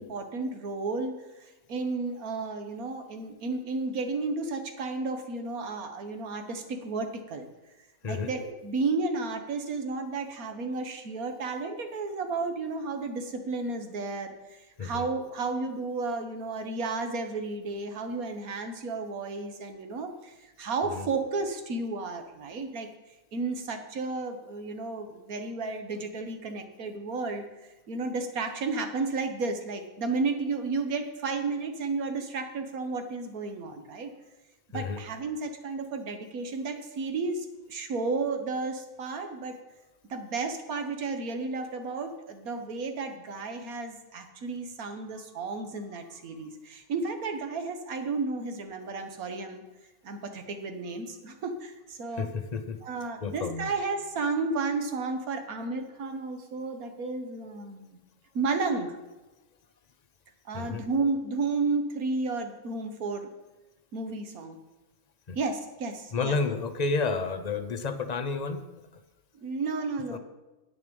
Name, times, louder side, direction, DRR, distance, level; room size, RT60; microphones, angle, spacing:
voice 1, 0.0-7.5 8.0-22.9 23.3-27.4 27.9-34.1 34.7-39.6 40.1-49.6 50.0-52.3 52.8-58.0 58.3-59.0 60.4-63.3 63.9-64.6 65.3-66.4 69.4-70.2, right 3 dB, 90° right, 6 dB, 1.6 m, -32 dB
voice 2, 14.8-15.1 20.8-21.1 34.7-35.0 52.1-52.8 53.2-53.7 60.5-60.8 65.3-65.4 66.1-68.6 70.1-70.2, left 4 dB, 45° left, 9 dB, 0.6 m, -31 dB
10.0 x 8.8 x 5.3 m, 1.1 s
omnidirectional pair, 1.5 m